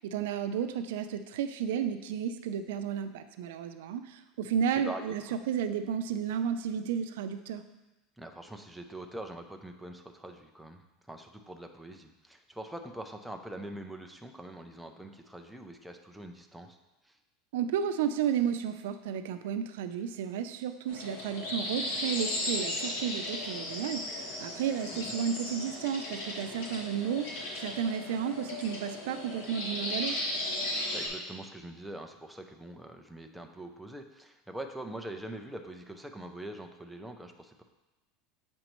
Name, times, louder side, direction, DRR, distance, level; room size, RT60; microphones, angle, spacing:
voice 1, 0.0-7.6 17.5-27.3 27.6-30.1, right 8 dB, 90° right, 9 dB, 0.4 m, -32 dB
voice 2, 4.7-5.4 8.2-16.8 17.0-17.2 24.9-25.1 30.9-37.6, right 1 dB, ahead, 4 dB, 0.4 m, -44 dB
sound 1, 20.9-31.1, left 1 dB, 80° left, 1.5 m, -36 dB
7.6 x 5.3 x 3.0 m, 1.0 s
supercardioid pair, 180°, 0 cm